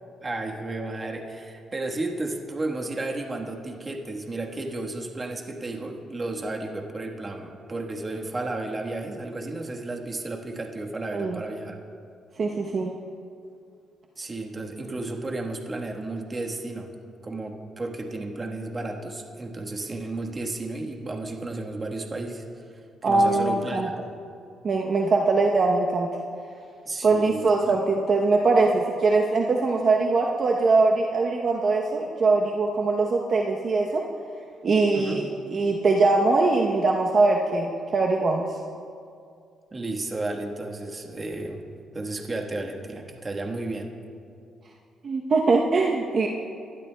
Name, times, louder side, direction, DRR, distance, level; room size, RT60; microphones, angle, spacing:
voice 1, 0.2-11.8 14.2-16.9 17.2-24.0 26.8-27.7 34.9-35.2 39.7-41.6 41.9-43.9, right 2 dB, 30° right, 1 dB, 1.3 m, -33 dB
voice 2, 12.4-12.9 23.0-23.9 24.6-26.1 27.0-34.0 34.6-37.7 37.9-38.5 45.0-46.3, right 3 dB, 50° right, 0 dB, 0.8 m, -22 dB
20.0 x 12.0 x 2.2 m, 2.4 s
cardioid pair, 90°, 0 cm